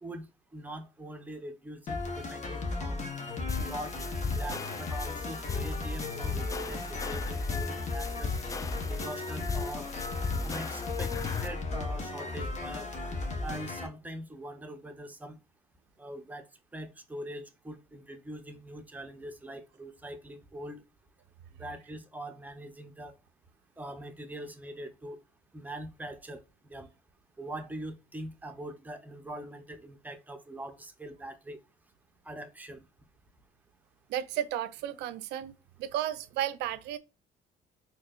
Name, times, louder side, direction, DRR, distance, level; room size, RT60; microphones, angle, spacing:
voice 1, 0.5-3.0 3.6-4.0 4.2-8.3 8.8-9.9 10.4-11.1 11.4-12.9 13.4-15.4 16.0-16.5 16.7-20.8 21.6-23.1 23.8-25.2 25.5-26.9 27.4-31.6 32.2-32.8, right 1 dB, 10° right, 0.7 m, -42 dB
sound 1, 1.9-13.9, left 3 dB, 45° left, 1.1 m, -35 dB
sound 2, 3.5-11.5, left 5 dB, 20° left, 0.3 m, -37 dB
voice 2, 34.1-35.5 35.8-37.0, right 11 dB, 85° right, 0.5 m, -33 dB
4.3 x 2.8 x 2.4 m
cardioid pair, 110°, 17 cm